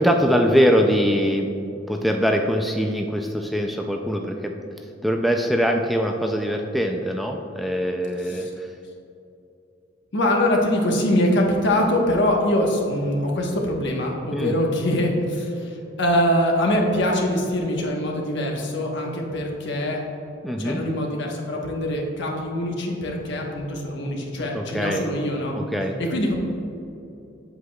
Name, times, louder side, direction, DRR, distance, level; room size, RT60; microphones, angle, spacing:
voice 1, 0.0-1.5 1.9-4.5 5.0-8.7 14.3-14.5 20.4-20.8 24.5-25.1 25.5-25.9, equal, ahead, 2 dB, 0.3 m, -22 dB
voice 2, 8.2-8.5 10.1-20.0 20.6-25.5 26.0-26.3, left 1 dB, 65° left, 0 dB, 1.1 m, -23 dB
7.9 x 7.9 x 2.3 m, 2.7 s
head